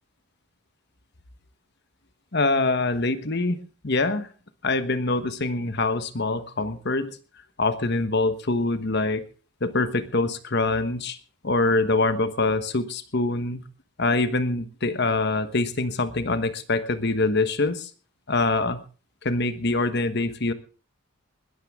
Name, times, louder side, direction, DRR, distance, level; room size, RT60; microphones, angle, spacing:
voice 1, 2.3-3.6 3.8-4.3 4.6-7.2 7.6-9.2 9.6-11.2 11.4-13.6 14.0-17.9 18.3-18.8 19.2-20.5, left 3 dB, 50° left, 11 dB, 1.2 m, -24 dB
20.5 x 13.5 x 3.6 m, 0.36 s
head